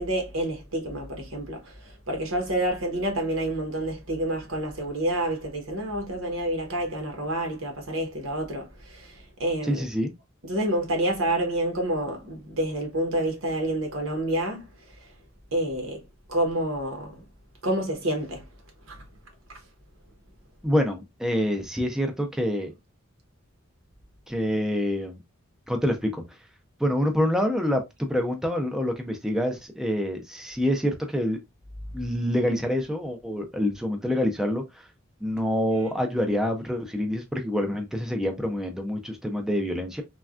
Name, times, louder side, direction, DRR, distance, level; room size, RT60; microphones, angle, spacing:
voice 1, 0.0-1.7 2.1-9.9 10.4-14.6 15.5-16.0 16.3-17.2 17.6-18.4 18.9-19.0, right 1 dB, 90° right, 1.0 m, -28 dB
voice 2, 9.6-10.1 20.6-22.7 24.3-25.2 25.7-26.2 26.8-31.4 31.9-34.8 35.2-40.0, equal, ahead, 0.4 m, -26 dB
3.3 x 2.2 x 2.4 m
head